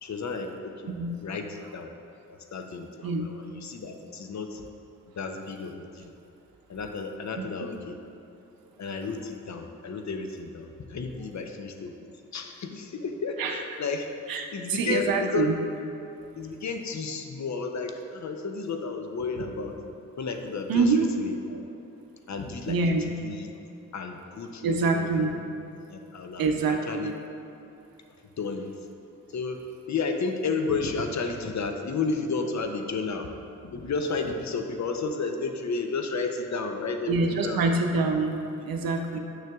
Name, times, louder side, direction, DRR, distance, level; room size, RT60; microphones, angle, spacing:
voice 1, 0.0-0.9 1.2-1.9 2.3-4.6 5.2-6.1 6.7-8.0 8.8-11.9 12.3-14.1 14.5-15.5 16.4-19.8 20.2-21.6 22.3-22.8 23.2-23.5 23.9-25.1 25.3-25.4 25.9-27.1 28.4-28.7 29.3-29.6 29.9-33.3 33.6-37.7, left 4 dB, 55° left, 5 dB, 0.6 m, -32 dB
voice 2, 0.9-1.2 3.0-3.3 7.4-7.5 13.4-13.6 14.3-15.5 20.7-21.1 22.7-23.0 24.6-25.3 26.4-27.1 37.1-39.2, right 4 dB, 80° right, 4 dB, 0.6 m, -25 dB
6.3 x 6.3 x 2.3 m, 2.8 s
supercardioid pair, 40°, 35 cm